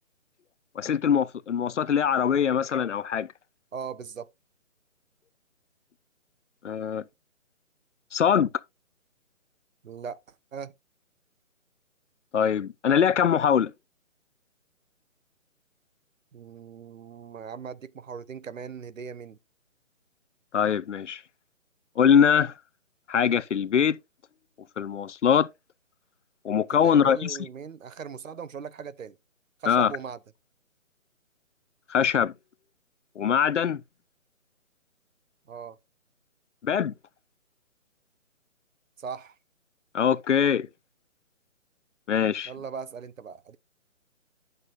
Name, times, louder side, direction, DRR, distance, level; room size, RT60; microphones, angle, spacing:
voice 1, 0.8-3.3 6.6-7.0 8.1-8.5 12.3-13.7 20.5-21.2 22.0-22.5 23.1-24.0 24.8-25.5 26.4-27.4 29.7-29.9 31.9-32.3 33.2-33.8 36.6-36.9 39.9-40.7 42.1-42.5, left 8 dB, 60° left, 0.6 m, -22 dB
voice 2, 3.7-4.3 9.8-10.7 16.3-19.4 26.8-29.2 29.6-30.2 35.5-35.8 39.0-39.4 42.5-43.6, right 6 dB, 75° right, 0.8 m, -39 dB
11.0 x 6.6 x 2.4 m
figure-of-eight pair, 155°, 40 cm